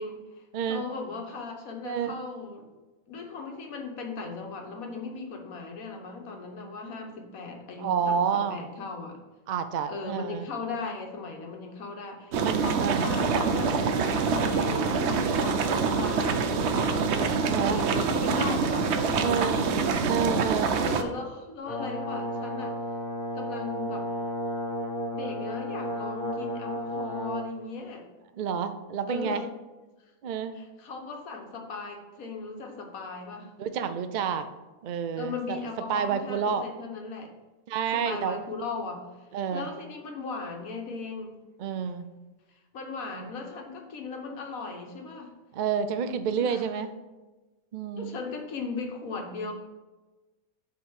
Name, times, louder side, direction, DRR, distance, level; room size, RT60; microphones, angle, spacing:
voice 1, 0.0-2.6 3.1-9.2 9.9-13.8 14.3-20.1 20.8-22.8 23.3-24.1 25.1-28.0 29.1-29.5 30.5-33.5 35.2-37.3 37.9-39.0 39.5-41.4 42.5-45.3 46.4-46.7 48.0-49.5, left 4 dB, 80° left, 3 dB, 1.5 m, -38 dB
voice 2, 0.5-0.8 1.8-2.1 7.8-8.6 9.5-10.5 12.4-13.1 17.4-17.8 19.2-19.6 20.1-20.7 28.4-29.4 30.2-30.5 33.6-34.5 34.8-35.6 35.9-36.6 37.7-38.4 39.3-39.7 41.6-42.0 43.2-43.3 45.5-46.9 47.7-48.2, right 7 dB, 80° right, 9 dB, 0.4 m, -29 dB
sound 1, 12.3-21.0, right 5 dB, 60° right, 0.8 m, -25 dB
Brass instrument, 21.7-27.5, left 1 dB, 20° left, 2.1 m, -33 dB
7.1 x 3.7 x 6.3 m, 1.2 s
omnidirectional pair, 1.5 m